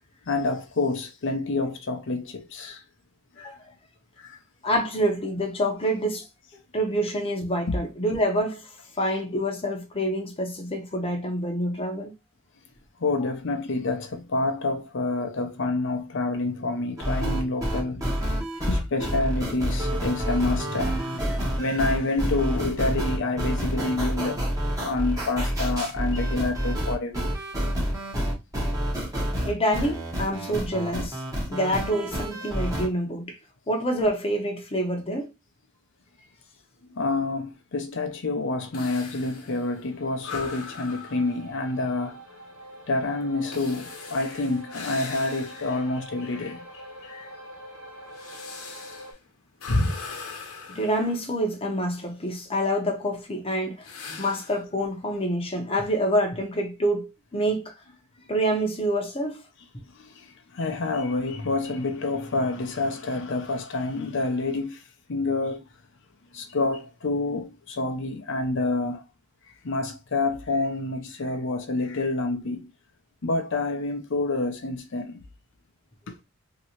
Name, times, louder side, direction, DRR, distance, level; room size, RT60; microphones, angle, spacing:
voice 1, 0.3-2.8 3.4-3.5 4.2-4.4 7.7-7.8 13.0-18.0 18.7-24.4 24.8-27.3 36.9-42.2 42.9-47.3 59.9-65.6 66.3-69.1 69.5-72.7 73.2-75.2 76.1-76.2, left 2 dB, 60° left, 0.6 m, -28 dB
voice 2, 4.6-6.3 6.7-12.1 18.6-18.7 29.4-31.2 31.5-33.4 33.7-35.3 50.7-53.9 54.2-57.7 58.3-59.4, equal, 25° left, 0.8 m, -27 dB
sound 1, 17.0-32.9, equal, 15° right, 1.0 m, -28 dB
sound 2, 38.7-45.9 46.4-46.5 47.2-51.8 53.8-54.6, left 2 dB, 80° left, 0.9 m, -36 dB
sound 3, 39.1-49.1, right 1 dB, 70° right, 1.2 m, -45 dB
3.0 x 2.8 x 2.9 m
head